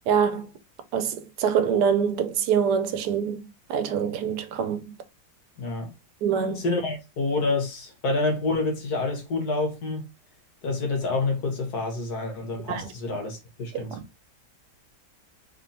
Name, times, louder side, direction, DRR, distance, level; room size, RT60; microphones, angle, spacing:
voice 1, 0.1-0.5 0.9-3.4 3.7-4.8 6.2-6.6 12.7-12.9 13.7-14.0, right 7 dB, 80° right, 1.2 m, -25 dB
voice 2, 5.6-5.9 6.5-10.1 10.6-13.9, left 3 dB, 70° left, 1.8 m, -28 dB
3.6 x 3.5 x 2.7 m
omnidirectional pair, 1.7 m